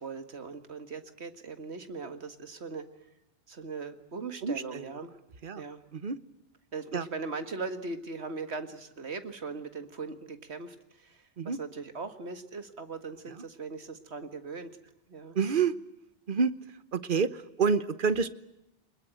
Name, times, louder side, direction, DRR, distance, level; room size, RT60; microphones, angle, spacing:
voice 1, 0.0-2.8 3.5-5.1 5.6-5.8 6.7-14.8 15.1-15.4, right 4 dB, 65° right, 9 dB, 2.1 m, -39 dB
voice 2, 4.4-4.9 5.4-5.6 5.9-6.2 6.9-7.1 11.4-11.6 13.3-13.4 15.3-15.7 16.3-16.5 16.9-18.3, right 5 dB, 50° right, 15 dB, 1.2 m, -28 dB
23.5 x 21.5 x 9.0 m, 0.87 s
omnidirectional pair, 1.2 m